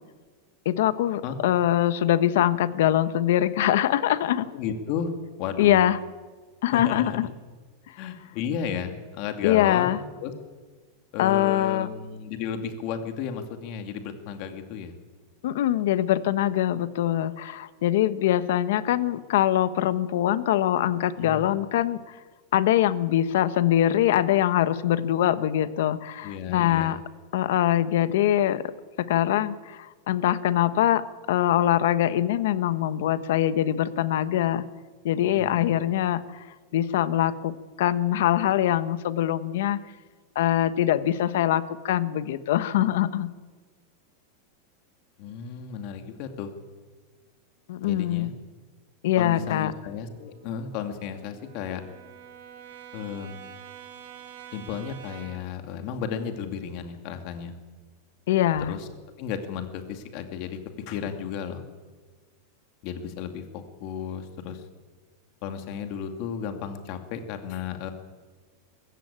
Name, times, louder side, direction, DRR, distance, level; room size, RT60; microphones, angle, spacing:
voice 1, 0.6-4.5 5.6-6.0 6.6-7.3 9.4-10.0 11.2-11.9 15.4-22.2 22.5-27.0 27.3-28.7 29.0-34.6 35.0-36.5 36.7-39.8 40.3-43.3 47.7-48.3 49.0-49.7 58.3-58.8, left 12 dB, 70° left, 14 dB, 1.2 m, -23 dB
voice 2, 4.5-5.1 5.4-5.8 6.7-7.2 8.0-10.3 11.1-14.9 21.2-21.5 26.2-27.0 35.2-35.7 45.2-46.5 47.8-48.3 49.2-51.8 52.9-53.5 54.5-57.5 58.7-58.9 59.2-60.6 60.9-61.6 62.8-64.6 65.4-67.9, left 7 dB, 45° left, 6 dB, 2.4 m, -33 dB
Brass instrument, 50.0-55.6, right 9 dB, 80° right, 3.2 m, -47 dB
21.5 x 15.5 x 8.8 m, 1.4 s
supercardioid pair, 160°, 0 cm